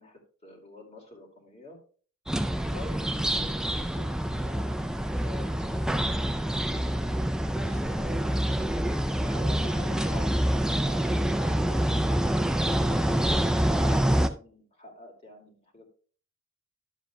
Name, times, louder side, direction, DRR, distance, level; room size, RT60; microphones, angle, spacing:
voice 1, 0.0-1.8 2.6-8.8 9.2-15.9, left 1 dB, 30° left, 1 dB, 2.3 m, -48 dB
sound 1, 2.3-14.3, right 1 dB, 5° right, 0.4 m, -26 dB
11.5 x 7.6 x 2.2 m, 0.41 s
head